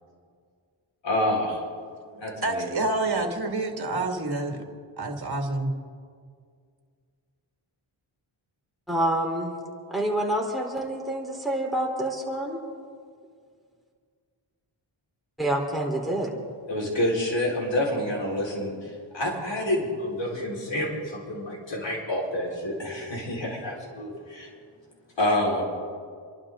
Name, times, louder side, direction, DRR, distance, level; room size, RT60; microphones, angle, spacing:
voice 1, 1.0-1.6 2.1-2.6 16.7-24.5 25.2-25.6, left 1 dB, 60° left, -2 dB, 4.6 m, -28 dB
voice 2, 2.4-4.6 5.0-5.8, right 2 dB, 50° right, 3 dB, 2.1 m, -28 dB
voice 3, 8.9-9.5 9.9-12.6 15.4-16.5, right 1 dB, ahead, 0 dB, 3.7 m, -27 dB
29.5 x 12.0 x 3.8 m, 2.1 s
cardioid pair, 60°, 49 cm